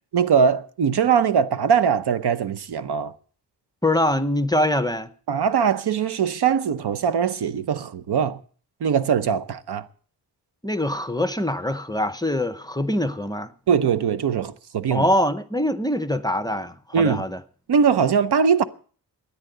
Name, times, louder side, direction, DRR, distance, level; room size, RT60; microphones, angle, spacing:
voice 1, 0.1-3.1 5.3-8.4 8.8-9.9 13.7-15.1 16.9-17.2 17.7-18.6, right 7 dB, 70° right, 0.9 m, -21 dB
voice 2, 3.8-5.1 10.6-13.5 14.9-17.4, left 1 dB, 10° left, 0.6 m, -23 dB
13.0 x 9.7 x 7.8 m
wide cardioid pair, 155°, 41 cm